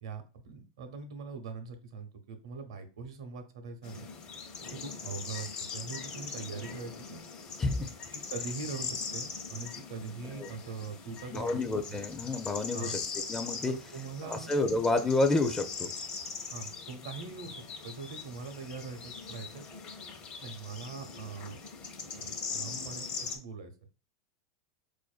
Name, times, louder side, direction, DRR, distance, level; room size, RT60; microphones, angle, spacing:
voice 1, 0.0-4.1 4.7-7.2 8.1-12.0 12.7-13.0 13.7-14.5 16.5-19.8 20.4-21.6 22.1-23.7, right 5 dB, 85° right, 7 dB, 0.7 m, -42 dB
sound 1, 3.8-23.4, left 5 dB, 40° left, 0.7 m, -41 dB
voice 2, 7.6-7.9 10.4-10.5 11.3-13.0 13.3-13.7 14.2-15.9, left 2 dB, 15° left, 6 dB, 0.4 m, -29 dB
4.5 x 2.5 x 2.4 m, 0.33 s
supercardioid pair, 115°, 3 cm